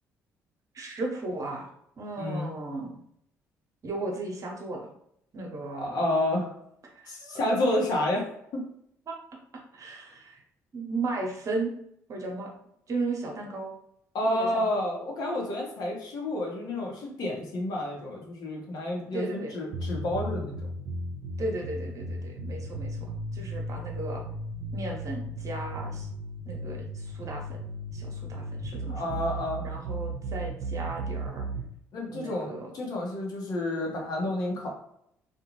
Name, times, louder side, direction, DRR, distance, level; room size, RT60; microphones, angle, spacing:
voice 1, 0.7-1.7 2.0-2.9 3.8-4.9 5.3-5.9 7.0-7.4 9.1-9.2 9.7-10.4 10.7-11.7 12.1-12.5 12.9-13.7 14.2-14.7 19.1-19.6 21.4-23.0 23.3-24.2 24.7-26.1 26.4-27.6 27.9-29.2 29.6-31.5 32.1-32.7, right 2 dB, 50° right, 0 dB, 0.9 m, -35 dB
voice 2, 2.2-2.5 5.8-6.5 7.1-8.3 8.5-8.6 14.1-20.6 28.9-29.7 31.9-34.7, left 1 dB, 65° left, -1 dB, 1.0 m, -30 dB
sound 1, 19.7-31.7, right 1 dB, 75° right, 0.5 m, -35 dB
2.5 x 2.3 x 3.0 m, 0.73 s
supercardioid pair, 60°, 7 cm